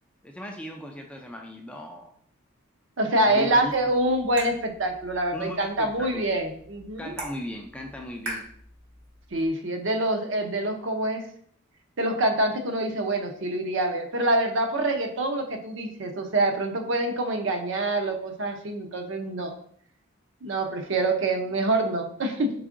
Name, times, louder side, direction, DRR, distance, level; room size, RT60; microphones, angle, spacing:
voice 1, 0.2-2.1 3.2-4.0 5.3-6.3 7.0-8.5, left 1 dB, 5° left, 1 dB, 0.3 m, -37 dB
voice 2, 3.0-7.1 9.3-11.2 12.0-19.5 20.4-22.5, right 1 dB, 60° right, 5 dB, 0.6 m, -26 dB
sound 1, 3.5-9.5, right 1 dB, 80° right, 1.4 m, -43 dB
4.7 x 3.5 x 2.5 m, 0.62 s
head